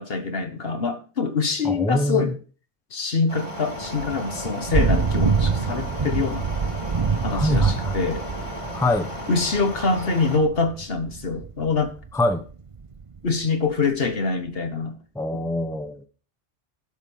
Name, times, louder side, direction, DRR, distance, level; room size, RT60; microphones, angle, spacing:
voice 1, 0.0-2.3 2.9-6.5 7.2-8.2 9.3-11.9 13.2-15.0, left 4 dB, 50° left, 1.5 m, -25 dB
voice 2, 1.6-2.3 7.3-8.0 8.7-9.1 12.1-12.4 15.1-16.1, left 1 dB, 5° left, 0.8 m, -24 dB
sound 1, 3.3-10.4, equal, 25° left, 2.6 m, -35 dB
Thunder / Rain, 3.8-13.3, right 5 dB, 35° right, 0.6 m, -27 dB
11.5 x 8.1 x 5.6 m
omnidirectional pair, 1.2 m